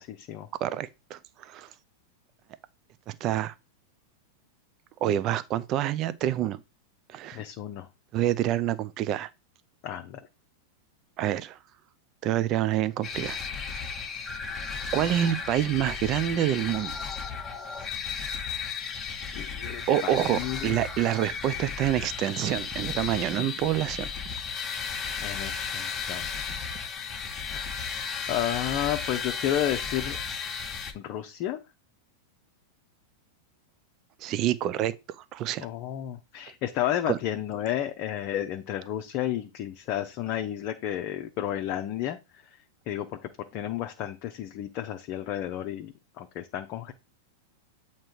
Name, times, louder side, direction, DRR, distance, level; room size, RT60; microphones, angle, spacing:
voice 1, 0.0-0.5 7.3-7.9 9.8-10.2 19.3-20.7 25.2-26.3 27.6-27.8 28.3-30.2 30.9-31.6 35.6-42.2 42.4-42.6 42.9-43.1 43.5-46.9, left 11 dB, 45° left, 0.6 m, -32 dB
voice 2, 0.6-1.7 3.1-3.5 5.0-6.6 7.1-7.4 8.1-9.3 11.2-11.6 12.2-13.4 14.9-17.1 19.9-24.1 34.2-35.7 37.1-37.2, right 12 dB, 40° right, 0.4 m, -27 dB
sound 1, 13.0-30.9, left 6 dB, 20° left, 1.1 m, -34 dB
7.5 x 2.9 x 4.5 m
hypercardioid pair, 100°, 0 cm